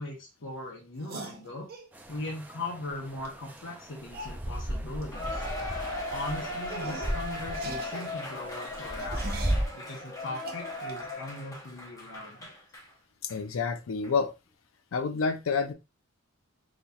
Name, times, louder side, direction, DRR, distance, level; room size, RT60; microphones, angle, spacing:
voice 1, 0.0-1.7 2.1-5.4 6.1-9.4 9.7-12.5, left 2 dB, 65° left, 0.9 m, -39 dB
sound 1, 1.0-1.9 3.2-3.3 3.6-3.7 4.1-4.4 5.0-5.2 5.5-5.7 6.1-6.2 6.7-7.2 7.5-9.7 10.4-11.0, right 2 dB, 50° right, 0.7 m, -41 dB
sound 2, 1.9-9.7, right 1 dB, 10° right, 0.4 m, -36 dB
Cheering, 5.1-12.9 13.3-13.4 14.0-14.1, left 2 dB, 15° left, 0.7 m, -38 dB
voice 2, 13.2-14.3 14.9-15.7, left 5 dB, 85° left, 0.5 m, -28 dB
4.0 x 3.0 x 2.3 m
head